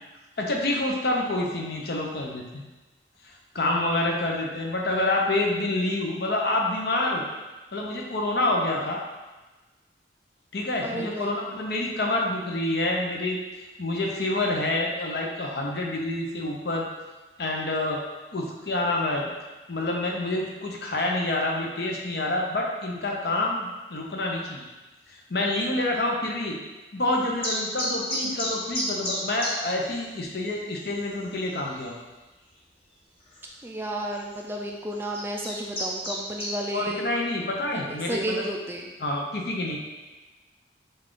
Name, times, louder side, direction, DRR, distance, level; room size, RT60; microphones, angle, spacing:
voice 1, 0.4-2.6 3.2-7.3 7.7-9.0 10.5-13.4 13.8-16.8 17.4-18.0 18.3-19.3 19.7-24.6 25.1-26.6 26.9-31.9 36.7-38.5 39.0-39.8, left 2 dB, 60° left, -1 dB, 0.7 m, -27 dB
voice 2, 10.8-11.3 33.6-37.1 37.4-37.8 38.1-38.9, right 1 dB, 10° right, 0 dB, 0.3 m, -32 dB
sound 1, 27.4-29.5 29.8-29.9 30.4-30.5 30.8-31.2 31.8-31.9 33.3-33.4 34.1-34.4 34.9-36.5, left 1 dB, 30° left, 0.9 m, -30 dB
5.4 x 2.4 x 3.8 m, 1.2 s
head